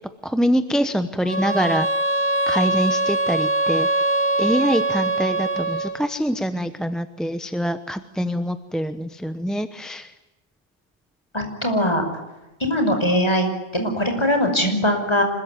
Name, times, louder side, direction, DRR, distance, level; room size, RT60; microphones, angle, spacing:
voice 1, 0.2-1.9 2.5-3.9 4.4-10.1, equal, ahead, 10 dB, 0.9 m, -24 dB
sound 1, 1.3-6.0, right 1 dB, 20° right, 3.1 m, -22 dB
voice 2, 11.3-12.0 12.6-15.2, equal, 25° left, 4 dB, 5.6 m, -21 dB
26.0 x 21.5 x 9.6 m, 1.0 s
omnidirectional pair, 1.2 m